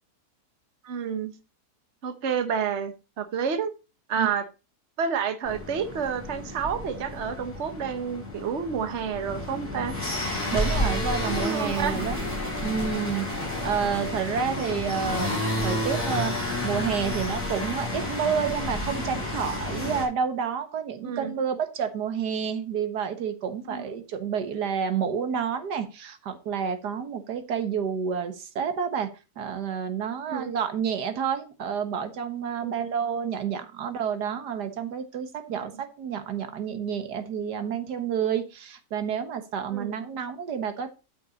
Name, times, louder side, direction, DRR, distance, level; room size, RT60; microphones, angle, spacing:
voice 1, 0.8-1.3 2.0-3.7 4.1-4.5 5.0-10.0 11.3-11.9 21.0-21.3 23.7-23.8 30.3-30.6 32.6-32.9 39.7-40.0, right 6 dB, 50° right, 8 dB, 1.3 m, -29 dB
sound 1, 5.4-20.0, left 1 dB, 40° left, 6.4 m, -31 dB
voice 2, 10.5-12.2 12.6-29.1 29.4-40.9, right 7 dB, 90° right, 9 dB, 1.8 m, -29 dB
12.5 x 6.1 x 4.1 m, 0.30 s
omnidirectional pair, 1.7 m